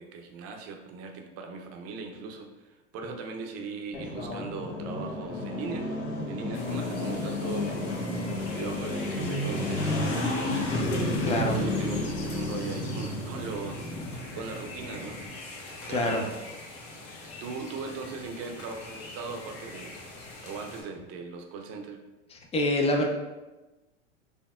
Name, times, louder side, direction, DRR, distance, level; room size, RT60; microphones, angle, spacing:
voice 1, 0.0-5.9 6.3-10.6 11.2-15.2 15.9-16.3 17.4-20.0 20.4-22.0, right 4 dB, 40° right, 4 dB, 0.6 m, -39 dB
sound 1, 3.9-15.3, left 1 dB, 75° left, 1.4 m, -31 dB
sound 2, 6.5-20.8, left 2 dB, 55° left, 1.3 m, -43 dB
voice 2, 11.2-11.6 15.6-16.3 22.3-23.1, left 1 dB, 15° left, 2 dB, 0.5 m, -27 dB
4.2 x 3.3 x 2.4 m, 1.1 s
hypercardioid pair, 100°, 37 cm